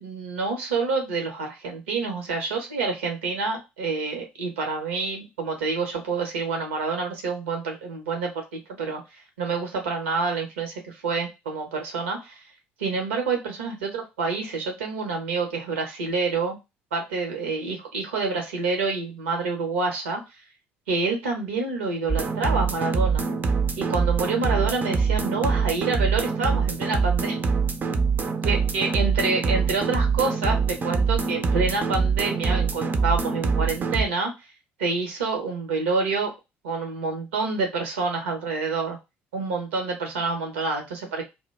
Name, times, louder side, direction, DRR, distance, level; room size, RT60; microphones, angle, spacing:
voice 1, 0.0-12.4 12.8-16.6 16.9-20.2 20.9-23.3 23.8-27.4 28.4-34.3 34.8-36.3 36.6-39.0 39.3-41.4, right 4 dB, 80° right, 3 dB, 0.8 m, -27 dB
sound 1, 22.1-34.0, right 5 dB, 30° right, 0.4 m, -24 dB
2.2 x 2.1 x 3.1 m, 0.24 s
figure-of-eight pair, 55°, 6 cm